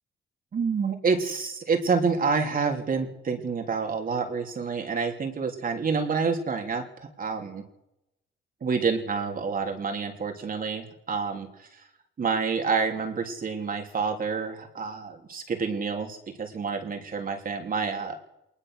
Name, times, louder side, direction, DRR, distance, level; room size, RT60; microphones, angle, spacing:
voice 1, 0.5-7.6 8.6-11.8 12.2-18.2, right 5 dB, 45° right, 3 dB, 3.4 m, -28 dB
20.5 x 20.0 x 6.5 m, 0.88 s
cardioid pair, 90°, 20 cm